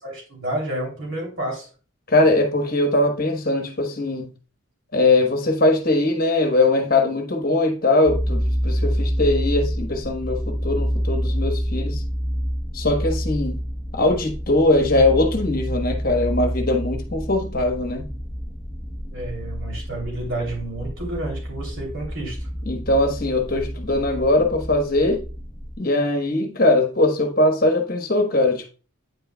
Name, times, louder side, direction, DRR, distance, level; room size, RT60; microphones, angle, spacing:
voice 1, 0.0-1.7 19.1-22.4, right 1 dB, 60° right, 2.8 m, -30 dB
voice 2, 2.1-4.3 4.9-12.0 12.7-13.6 13.9-18.1 22.7-25.2 25.8-28.7, left 2 dB, 40° left, 1.1 m, -21 dB
sound 1, 8.1-25.8, equal, ahead, 0.9 m, -28 dB
9.2 x 5.3 x 2.2 m
head